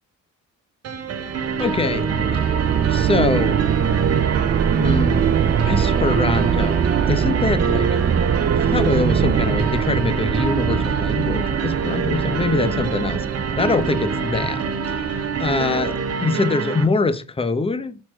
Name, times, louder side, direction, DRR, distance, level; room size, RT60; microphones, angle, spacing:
sound 1, 0.8-16.8, right 5 dB, 55° right, 1.3 m, -26 dB
sound 2, 1.2-16.2, right 8 dB, 35° right, 0.4 m, -22 dB
voice 1, 1.6-2.1 2.9-3.6 4.7-5.2 5.7-8.0 8.6-13.2 13.5-18.0, left 3 dB, 20° left, 0.8 m, -24 dB
6.2 x 4.3 x 4.9 m
cardioid pair, 90°, 30 cm